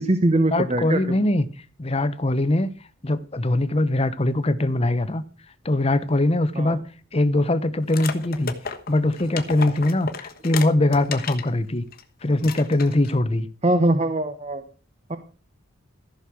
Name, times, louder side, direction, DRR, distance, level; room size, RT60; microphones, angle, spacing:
voice 1, 0.0-1.0 6.6-6.8 13.6-14.6 15.1-15.2, right 1 dB, 30° right, 0.9 m, -21 dB
voice 2, 0.5-1.4 1.8-2.7 3.0-5.2 5.6-6.8 7.1-8.5 8.9-11.8 12.2-13.5, left 1 dB, 30° left, 0.8 m, -22 dB
sound 1, 7.9-11.5 11.9-12.0 12.4-13.2, left 5 dB, 45° left, 1.3 m, -33 dB
14.5 x 6.5 x 6.2 m
head